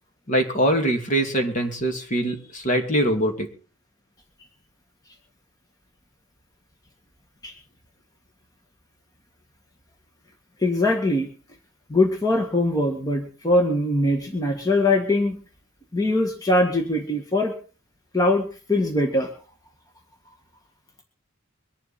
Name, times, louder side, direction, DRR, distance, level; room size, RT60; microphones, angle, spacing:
voice 1, 0.3-3.5, right 1 dB, 40° left, 4 dB, 2.5 m, -23 dB
voice 2, 10.6-11.3 11.9-15.4 15.9-17.5 18.1-19.3, left 2 dB, 20° left, 3 dB, 1.8 m, -22 dB
23.0 x 11.0 x 4.3 m, 0.37 s
head